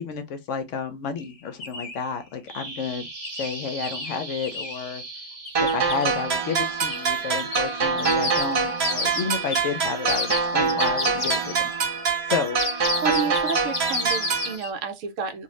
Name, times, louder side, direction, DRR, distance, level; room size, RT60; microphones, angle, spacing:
voice 1, 0.0-3.1 3.4-5.0 5.6-11.7 12.3-12.6, left 6 dB, 65° left, 0.9 m, -31 dB
sound 1, 1.2-1.3 1.6-2.0 3.2-4.9 5.5-6.0 6.9-7.1 7.4-11.8 12.4-14.7, left 3 dB, 40° left, 0.5 m, -31 dB
Bird vocalization bird call bird song, 2.5-10.5, right 3 dB, 25° right, 1.0 m, -41 dB
sound 2, 5.6-14.6, right 5 dB, 55° right, 1.1 m, -25 dB
voice 2, 13.0-15.4, right 5 dB, 70° right, 0.9 m, -30 dB
2.6 x 2.6 x 3.1 m
omnidirectional pair, 1.4 m